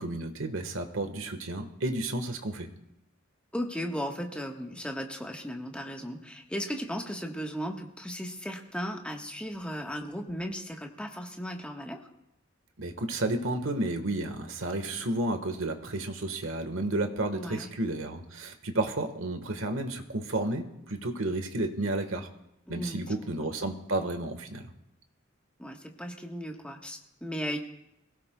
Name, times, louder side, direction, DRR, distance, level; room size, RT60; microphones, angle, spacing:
voice 1, 0.0-2.7 12.8-22.3 22.7-24.6, right 2 dB, 80° right, 7 dB, 1.4 m, -32 dB
voice 2, 3.5-12.0 17.3-17.7 22.7-23.0 23.4-23.5 25.6-27.6, equal, 5° left, 2 dB, 1.3 m, -36 dB
23.5 x 16.5 x 2.3 m, 0.84 s
head